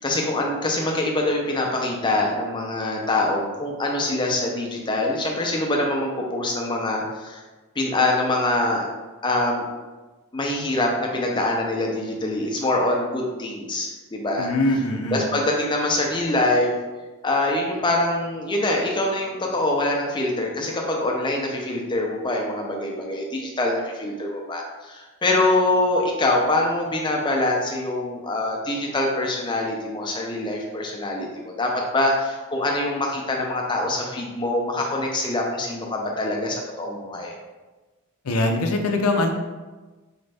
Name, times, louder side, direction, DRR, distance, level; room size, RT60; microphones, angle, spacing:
voice 1, 0.0-7.4 7.8-8.9 9.2-9.6 10.3-14.5 15.1-16.7 17.2-37.3, left 2 dB, 20° left, -1 dB, 0.6 m, -24 dB
voice 2, 14.4-15.2 38.2-39.3, left 2 dB, 80° left, 4 dB, 0.6 m, -22 dB
4.2 x 2.6 x 3.3 m, 1.2 s
head